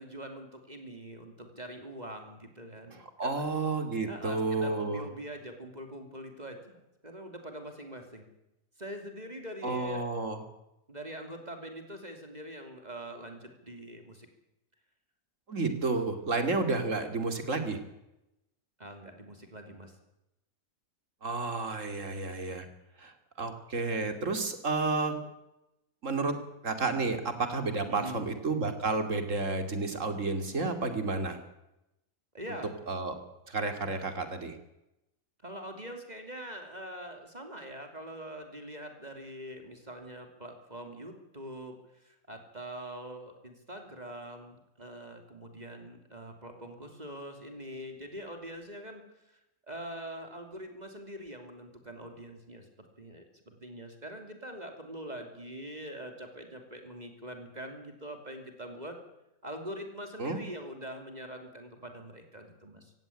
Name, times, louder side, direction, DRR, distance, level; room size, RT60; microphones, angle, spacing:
voice 1, 0.0-3.4 4.0-8.3 8.8-10.1 10.9-14.3 18.8-20.0 27.8-28.3 32.3-32.7 35.4-49.4 49.7-59.0 59.4-62.9, right 1 dB, 30° right, 5 dB, 3.0 m, -43 dB
voice 2, 3.2-5.1 9.6-10.4 15.5-17.8 21.2-22.7 23.0-25.2 26.0-26.3 26.6-31.4 32.9-33.2 33.5-34.6 60.2-60.4, right 3 dB, 70° right, 8 dB, 3.0 m, -31 dB
16.5 x 16.5 x 10.0 m, 0.89 s
omnidirectional pair, 1.4 m